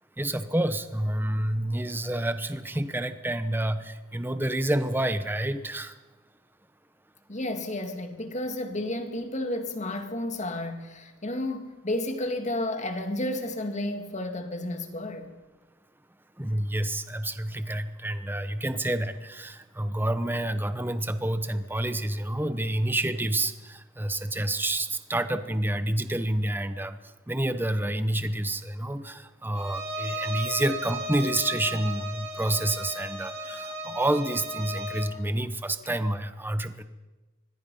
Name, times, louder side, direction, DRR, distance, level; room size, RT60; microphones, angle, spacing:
voice 1, 0.2-5.9 16.4-27.0 27.3-36.8, right 1 dB, 10° right, 1.0 m, -28 dB
voice 2, 7.3-15.3, left 1 dB, 35° left, 2.0 m, -32 dB
Bowed string instrument, 29.5-35.2, right 1 dB, 30° right, 3.6 m, -35 dB
25.5 x 20.0 x 5.5 m
head